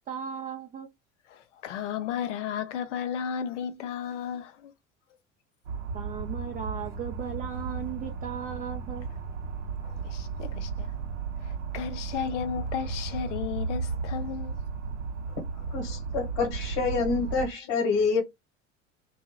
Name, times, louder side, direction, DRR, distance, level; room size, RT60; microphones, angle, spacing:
voice 1, 0.1-0.9 5.9-9.1, right 8 dB, 25° right, 0.4 m, -36 dB
voice 2, 1.3-4.7 9.8-10.9 11.4-14.6 15.6-16.0, left 8 dB, 70° left, 0.6 m, -34 dB
sound 1, 5.6-17.5, right 5 dB, 75° right, 0.6 m, -34 dB
voice 3, 15.7-18.2, left 4 dB, 50° left, 1.1 m, -27 dB
2.7 x 2.3 x 2.6 m
figure-of-eight pair, 70°, 38 cm